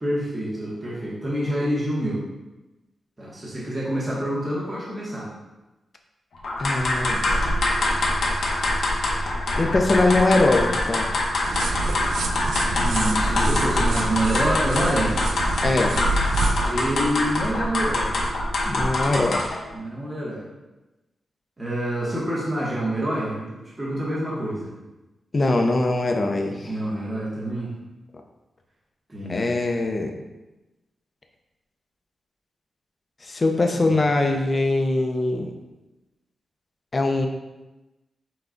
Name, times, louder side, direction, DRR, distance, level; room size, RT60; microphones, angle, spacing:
voice 1, 0.0-2.2 3.2-5.3 12.7-15.2 16.6-18.1 19.7-20.5 21.6-24.7 26.6-27.7 29.1-29.5 33.7-34.0, right 1 dB, 20° right, -7 dB, 1.0 m, -27 dB
sound 1, 6.4-19.6, left 1 dB, 70° left, 0.8 m, -24 dB
voice 2, 6.6-7.2 9.6-11.1 15.6-15.9 18.7-19.4 25.3-26.7 29.3-30.1 33.2-35.5 36.9-37.3, left 2 dB, 30° left, 3 dB, 0.5 m, -22 dB
sound 2, 11.4-16.7, right 3 dB, 80° right, 0.4 m, -28 dB
5.9 x 2.3 x 3.8 m, 1.1 s
wide cardioid pair, 135°, 0 cm